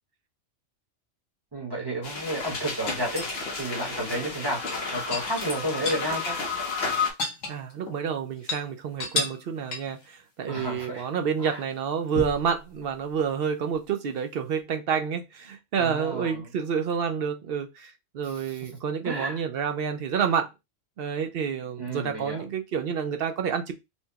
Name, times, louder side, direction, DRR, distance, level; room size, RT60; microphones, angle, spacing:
voice 1, 1.5-4.6 4.9-6.3 6.7-6.8 10.5-11.1 11.4-11.6 15.8-16.5 18.2-18.7 19.0-19.4 21.8-22.5, right 1 dB, 20° right, 1.1 m, -32 dB
sound 1, 2.0-7.1, left 4 dB, 60° left, 1.0 m, -32 dB
sound 2, 2.9-3.7 4.5-6.1 6.4-6.5 6.8-8.0 8.4-8.6 9.0-9.5 9.7-10.0 12.1-12.5 14.2-14.3, left 3 dB, 85° left, 1.4 m, -32 dB
voice 2, 7.5-20.5 21.0-23.7, right 7 dB, 60° right, 0.7 m, -29 dB
4.4 x 2.2 x 2.8 m
omnidirectional pair, 1.3 m